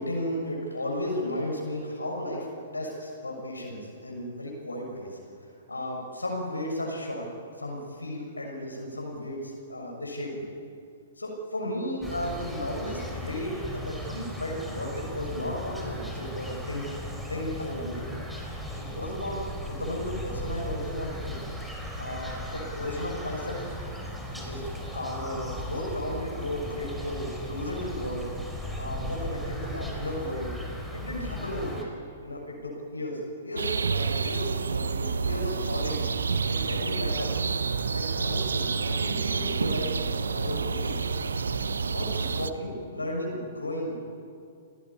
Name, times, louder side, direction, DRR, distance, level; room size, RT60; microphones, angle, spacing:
voice 1, 0.0-2.5 2.7-7.3 7.6-10.5 11.2-16.9 17.3-18.1 18.7-21.5 22.0-23.6 24.3-24.6 24.9-28.3 28.8-30.5 30.9-31.9 32.2-36.1 36.5-37.3 37.9-40.0 40.3-41.0 41.9-44.1, left 1 dB, 85° left, -1 dB, 6.5 m, -34 dB
sound 1, 12.0-31.8, left 1 dB, ahead, 4.7 m, -37 dB
sound 2, 33.6-42.5, right 5 dB, 70° right, 1.0 m, -29 dB
sound 3, 33.9-42.5, right 3 dB, 30° right, 7.2 m, -44 dB
29.5 x 19.0 x 10.0 m, 2.5 s
figure-of-eight pair, 115°, 0 cm